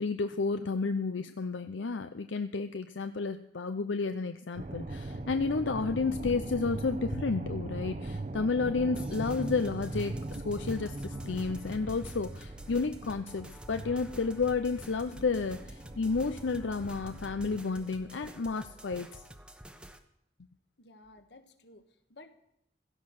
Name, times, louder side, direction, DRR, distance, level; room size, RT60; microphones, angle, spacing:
voice 1, 0.0-19.2, left 4 dB, 85° left, 9 dB, 0.6 m, -31 dB
sound 1, 4.5-17.6, right 2 dB, 40° right, 0.8 m, -40 dB
sound 2, 9.0-20.0, right 1 dB, 5° right, 1.0 m, -50 dB
voice 2, 20.8-22.4, left 2 dB, 60° left, 8 dB, 1.6 m, -55 dB
16.5 x 13.5 x 6.4 m, 0.78 s
head